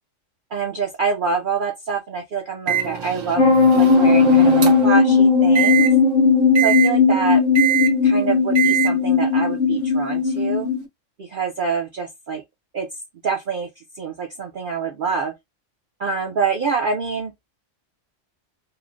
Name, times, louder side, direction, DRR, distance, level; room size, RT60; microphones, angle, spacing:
voice 1, 0.5-3.4 3.8-5.9 6.6-7.4 8.0-10.7 11.2-12.4 12.7-12.9 13.2-15.3 16.0-17.3, right 5 dB, 55° right, 0.6 m, -26 dB
Microwave oven, 2.7-5.0 5.6-5.9 6.6-6.9 7.6-7.9 8.6-8.9, right 9 dB, 85° right, 1.2 m, -23 dB
sound 1, 3.4-10.8, left 4 dB, 50° left, 0.7 m, -16 dB
3.1 x 2.1 x 2.4 m
omnidirectional pair, 1.3 m